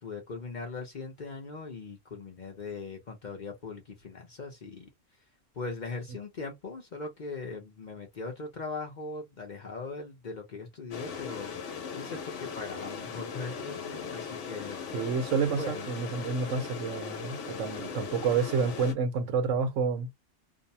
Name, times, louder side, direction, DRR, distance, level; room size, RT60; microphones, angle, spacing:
voice 1, 0.0-4.9 5.5-14.8 15.6-15.9, left 3 dB, 45° left, 0.7 m, -40 dB
sound 1, 10.9-18.9, left 6 dB, 75° left, 1.1 m, -39 dB
voice 2, 14.9-20.1, right 5 dB, 80° right, 1.1 m, -29 dB
2.7 x 2.1 x 2.6 m
omnidirectional pair, 1.3 m